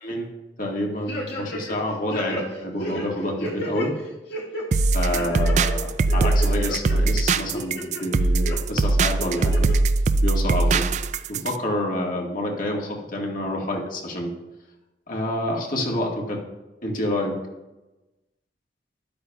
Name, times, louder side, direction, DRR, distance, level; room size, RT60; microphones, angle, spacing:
voice 1, 0.6-3.9 4.9-9.7 10.2-10.9 11.3-14.3 15.1-16.4 16.8-17.3, left 1 dB, 50° left, 0 dB, 1.7 m, -28 dB
sound 1, 1.1-1.8 2.1-3.9 4.3-4.6 5.1-5.7 6.1-6.9 7.4-8.0 8.4-8.6 9.2-9.8 10.1-10.2, equal, 70° left, 2.0 m, -32 dB
sound 2, 4.7-11.6, right 3 dB, 45° right, 0.3 m, -21 dB
12.5 x 10.5 x 2.3 m, 1.1 s
head